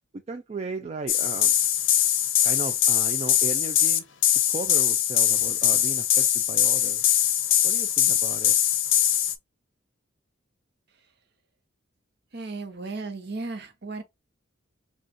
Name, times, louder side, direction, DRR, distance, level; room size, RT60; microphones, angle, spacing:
voice 1, 0.3-1.5 2.4-4.0 4.5-7.0 7.6-8.6, right 3 dB, 30° right, 0.3 m, -36 dB
sound 1, 1.1-9.3, left 11 dB, 65° left, 0.6 m, -22 dB
voice 2, 12.3-14.0, right 3 dB, 55° right, 0.9 m, -35 dB
5.2 x 2.3 x 2.5 m
head